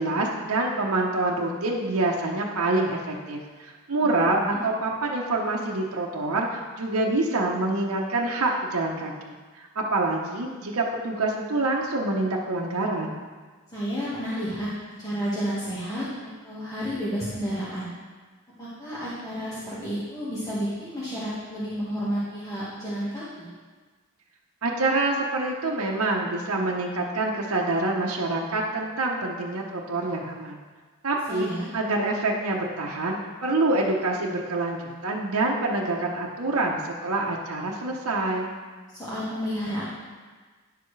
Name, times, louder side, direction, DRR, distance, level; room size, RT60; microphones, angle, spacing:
voice 1, 0.0-13.2 24.6-30.6 31.0-31.5 31.7-38.5, right 2 dB, 70° right, -2 dB, 0.9 m, -26 dB
voice 2, 13.7-14.7 15.0-17.9 18.6-23.5 31.3-31.7 38.9-39.8, equal, 15° left, -10 dB, 1.5 m, -31 dB
10.0 x 6.9 x 3.2 m, 1.4 s
head